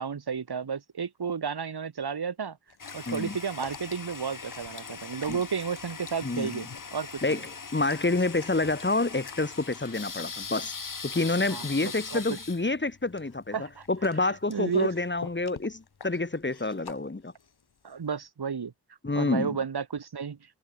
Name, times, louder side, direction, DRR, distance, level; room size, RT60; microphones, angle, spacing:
voice 1, 0.0-2.6 2.9-7.4 11.5-12.4 13.5-13.8 14.2-14.9 17.8-18.7 19.1-20.4, right 6 dB, 75° right, 6.8 m, -32 dB
sound 1, 2.7-18.3, left 6 dB, 75° left, 7.0 m, -50 dB
Toilet flush, 2.8-15.4, left 5 dB, 55° left, 3.0 m, -41 dB
voice 2, 3.1-3.4 5.3-5.4 6.2-6.6 7.2-10.7 11.0-13.5 13.9-17.3 19.0-19.6, left 2 dB, 30° left, 2.8 m, -28 dB
cardioid pair, 50°, 39 cm